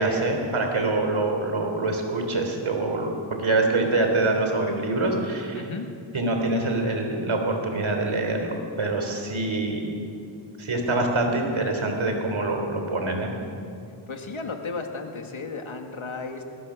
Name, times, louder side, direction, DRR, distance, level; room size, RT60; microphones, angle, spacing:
voice 1, 0.0-3.1 3.4-5.7 6.1-9.9 10.6-13.3, right 2 dB, 80° right, 3 dB, 3.6 m, -25 dB
voice 2, 5.5-5.9 14.1-16.4, left 4 dB, 80° left, 4 dB, 2.1 m, -34 dB
20.5 x 20.0 x 6.3 m, 2.5 s
wide cardioid pair, 70°, 48 cm